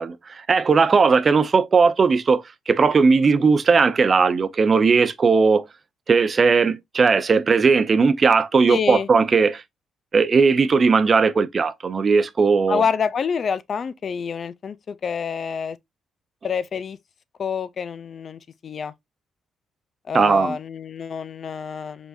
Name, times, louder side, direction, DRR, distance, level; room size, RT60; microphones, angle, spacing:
voice 1, 0.0-5.6 6.1-9.6 10.1-12.8 20.1-20.6, right 5 dB, 40° right, 0.5 m, -18 dB
voice 2, 8.7-9.1 12.7-15.8 16.4-17.0 17.4-18.9 20.1-22.1, left 6 dB, 50° left, 0.4 m, -27 dB
4.9 x 3.9 x 2.4 m
cardioid pair, 90°, 0 cm